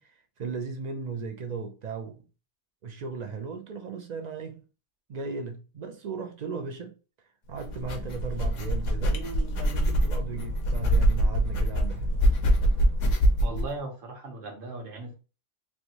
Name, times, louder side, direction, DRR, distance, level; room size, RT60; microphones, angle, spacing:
voice 1, 0.0-2.2 2.8-4.6 5.1-6.9 7.5-12.2, right 5 dB, 65° right, 0.4 m, -36 dB
sound 1, 7.6-13.7, equal, 85° left, 1.0 m, -24 dB
voice 2, 13.4-15.2, right 3 dB, 50° right, 1.0 m, -38 dB
3.4 x 2.6 x 2.8 m
omnidirectional pair, 1.2 m